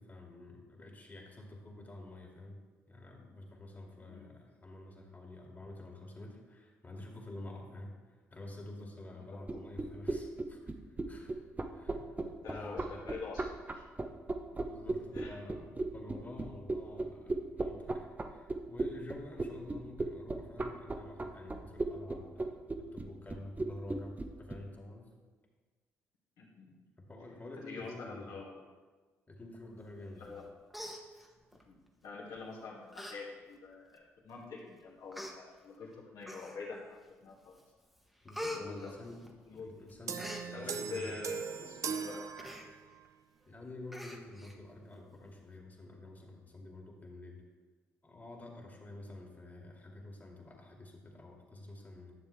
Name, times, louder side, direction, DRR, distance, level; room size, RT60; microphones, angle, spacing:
voice 1, 0.0-2.6 2.9-10.6 10.9-11.3 11.7-13.0 14.5-25.1 27.0-28.4 29.3-30.3 38.2-41.3 43.5-47.4 48.0-52.1, left 2 dB, 25° left, 0 dB, 2.1 m, -49 dB
sound 1, 9.4-24.6, right 2 dB, 25° right, 0.9 m, -35 dB
voice 2, 12.4-13.8 15.1-15.4 26.4-26.8 27.7-28.5 30.2-30.4 31.7-37.5 38.5-39.0 39.5-39.7 40.5-42.2, left 4 dB, 70° left, -4 dB, 2.1 m, -46 dB
Human voice, 30.2-30.4 30.7-31.6 32.4-32.5 32.9-33.2 33.5-33.6 34.4-34.5 35.1-35.3 36.2-36.8 37.3-37.6 37.9-39.6 39.9-40.5 42.4-42.7 43.0-43.1 43.4-43.5 43.9-44.6 44.9-45.0, left 1 dB, ahead, 1.2 m, -44 dB
sound 2, 40.1-43.1, right 6 dB, 55° right, 0.6 m, -40 dB
10.5 x 6.8 x 3.3 m, 1.4 s
hypercardioid pair, 50°, 6 cm